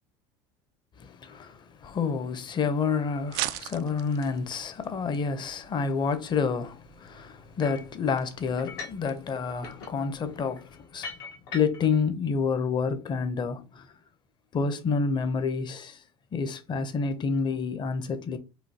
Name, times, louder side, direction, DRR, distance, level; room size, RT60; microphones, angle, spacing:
voice 1, 1.0-11.1 11.5-13.8 14.5-16.0 16.3-18.4, left 5 dB, 35° left, 0.8 m, -29 dB
sound 1, 3.2-9.8, right 15 dB, 75° right, 0.4 m, -41 dB
sound 2, 7.6-7.9 8.6-9.1 9.4-12.0, left 5 dB, 80° left, 1.5 m, -41 dB
4.9 x 2.7 x 2.9 m
supercardioid pair, 90°, 13 cm